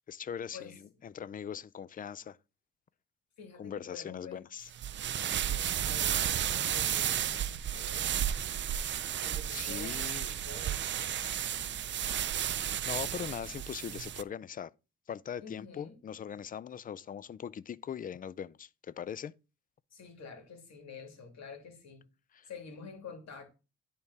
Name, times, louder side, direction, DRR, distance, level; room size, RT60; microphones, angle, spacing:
voice 1, 0.1-2.4 3.6-4.7 9.5-10.3 12.8-14.7 15.1-19.3 22.3-22.5, left 8 dB, 30° left, 0.3 m, -41 dB
voice 2, 3.4-4.5 5.2-8.3 9.2-12.0 15.4-16.0 19.9-22.0 22.5-23.4, left 5 dB, 60° left, 2.8 m, -49 dB
sound 1, 4.7-14.2, right 10 dB, 40° right, 0.4 m, -33 dB
10.5 x 3.6 x 4.1 m
cardioid pair, 90°, 30 cm